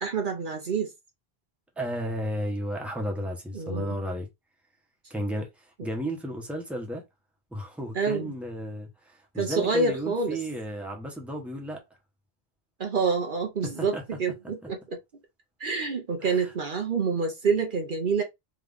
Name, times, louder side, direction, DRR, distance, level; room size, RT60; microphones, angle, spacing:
voice 1, 0.0-0.9 3.5-4.0 7.9-8.3 9.3-10.4 12.8-15.0 15.6-18.2, right 4 dB, 55° right, 0.9 m, -27 dB
voice 2, 1.8-4.3 5.1-7.0 7.5-11.8 13.6-14.0 16.2-16.5, equal, ahead, 1.0 m, -33 dB
3.6 x 3.2 x 3.4 m
omnidirectional pair, 1.1 m